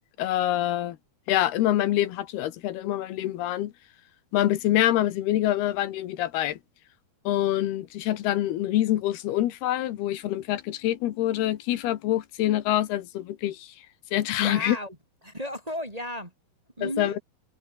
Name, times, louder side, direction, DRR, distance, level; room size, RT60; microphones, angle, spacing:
voice 1, 0.2-1.0 1.3-3.7 4.3-6.6 7.2-13.7 14.1-14.8 16.8-17.1, left 13 dB, 80° left, 3.3 m, -25 dB
voice 2, 14.4-15.0 15.2-16.3 16.8-17.2, equal, 10° right, 3.8 m, -34 dB
omnidirectional pair, 4.5 m